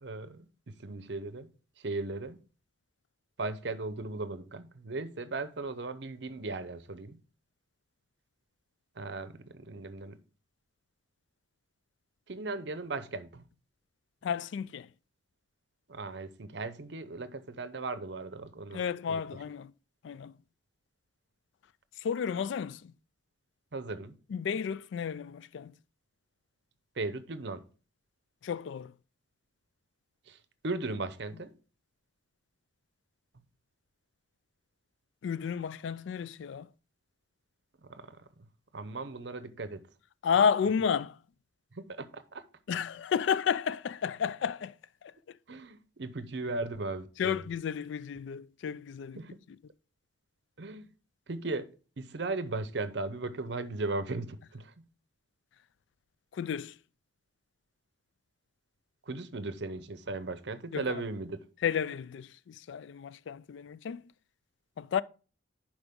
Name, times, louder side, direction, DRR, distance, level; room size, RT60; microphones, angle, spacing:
voice 1, 0.0-1.5 1.8-2.4 3.4-7.2 9.0-10.2 12.3-13.5 15.9-19.2 23.7-24.2 27.0-27.6 30.3-30.4 30.6-31.5 37.8-38.2 38.7-39.8 41.7-42.4 45.5-47.4 49.2-49.4 50.6-50.9 51.3-51.7 52.0-54.7 59.1-61.4, right 3 dB, 60° right, 0.7 m, -37 dB
voice 2, 14.2-14.9 18.7-19.7 20.0-20.4 22.0-22.9 24.3-25.8 28.4-28.9 35.2-36.7 40.2-41.2 42.7-44.8 45.0-45.4 47.2-49.2 56.3-56.8 60.7-61.0 61.6-64.0 64.8-65.0, left 7 dB, 70° left, 0.3 m, -32 dB
10.5 x 4.9 x 3.6 m
head